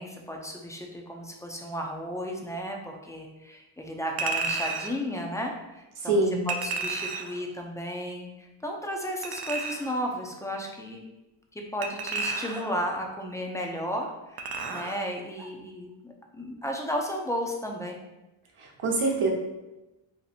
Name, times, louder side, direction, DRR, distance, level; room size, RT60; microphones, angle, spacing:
voice 1, 0.0-11.1 11.5-18.0, equal, 5° left, 1 dB, 0.4 m, -34 dB
Chink clink, 4.2-5.0 6.5-7.4 9.2-10.0 11.8-12.8 14.4-15.0 15.4-15.5, right 4 dB, 55° right, 0.5 m, -32 dB
voice 2, 6.0-6.4 18.6-19.3, right 2 dB, 85° right, 0 dB, 0.9 m, -25 dB
2.8 x 2.6 x 4.1 m, 1.0 s
wide cardioid pair, 90°, 49 cm